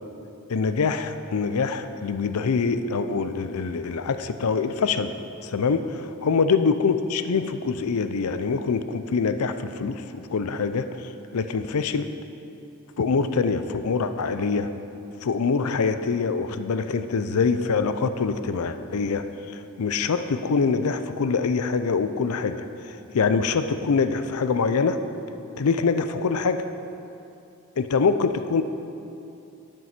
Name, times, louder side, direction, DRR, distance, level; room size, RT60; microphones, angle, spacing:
voice 1, 0.5-5.1 5.4-10.0 10.3-12.1 13.0-14.7 15.2-22.6 22.8-25.0 25.6-26.6 27.8-28.6, left 5 dB, 90° left, 10 dB, 0.5 m, -24 dB
11.0 x 5.3 x 5.8 m, 2.7 s
head